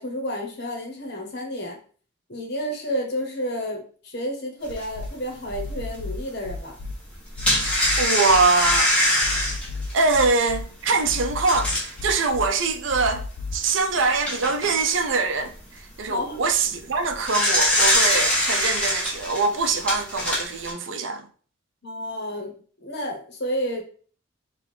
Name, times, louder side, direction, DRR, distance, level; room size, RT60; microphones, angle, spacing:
voice 1, 0.0-1.8 2.3-6.8 16.1-16.4 21.8-23.8, equal, 55° left, 1.0 m, -31 dB
sound 1, 4.7-5.1 5.5-6.9 7.4-8.8 9.2-10.6 11.1-12.5 12.9-13.6, left 3 dB, 85° left, 0.5 m, -33 dB
sound 2, 4.8-4.9 5.5-5.6 7.0-12.0 12.6-12.7 13.1-13.2 13.9-14.7 16.9-20.7, left 1 dB, 5° left, 1.1 m, -23 dB
voice 2, 8.0-9.0 9.9-13.3 13.5-21.3, right 4 dB, 65° right, 0.5 m, -23 dB
4.8 x 2.4 x 3.3 m
head